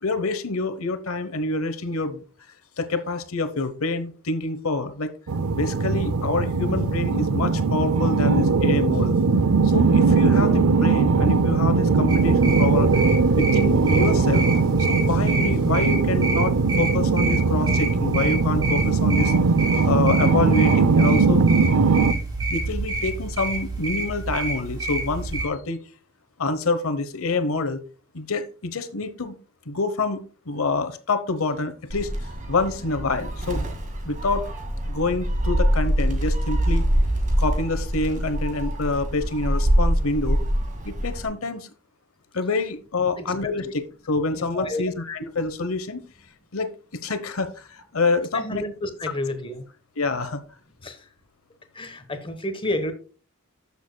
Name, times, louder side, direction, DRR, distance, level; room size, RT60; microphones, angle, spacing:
voice 1, 0.0-2.2 2.8-5.1 5.5-9.2 9.6-13.0 13.3-14.5 14.8-19.3 19.8-21.5 22.5-25.8 26.4-27.8 28.1-29.4 29.7-32.1 32.5-33.7 34.0-34.5 34.9-36.8 37.4-40.4 40.8-41.7 42.3-46.0 46.5-48.6 50.0-50.4, left 3 dB, 75° left, 1.0 m, -27 dB
sound 1, 5.3-22.1, right 4 dB, 85° right, 0.5 m, -20 dB
sound 2, 12.1-25.4, right 2 dB, 20° right, 2.6 m, -29 dB
Gull seagull, 31.9-41.3, equal, 35° right, 2.0 m, -24 dB
voice 2, 48.3-49.6 50.8-51.0 51.7-52.9, left 1 dB, 25° left, 1.1 m, -30 dB
13.0 x 7.0 x 2.2 m
head